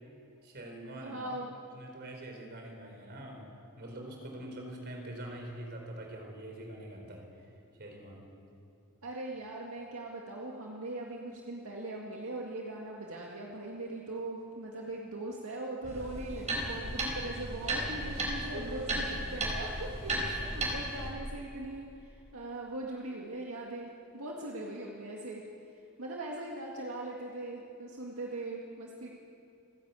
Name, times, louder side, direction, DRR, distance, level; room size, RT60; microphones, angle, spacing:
voice 1, 0.4-1.4 1.7-3.5 3.8-7.3 7.8-8.3 18.5-18.8, right 1 dB, 50° right, 2 dB, 4.2 m, -44 dB
voice 2, 1.0-1.5 9.0-25.4 26.0-29.1, right 2 dB, 70° right, -2 dB, 2.1 m, -40 dB
sound 1, 15.8-21.1, right 1 dB, 35° right, 4.2 m, -35 dB
29.5 x 10.5 x 8.3 m, 2.8 s
head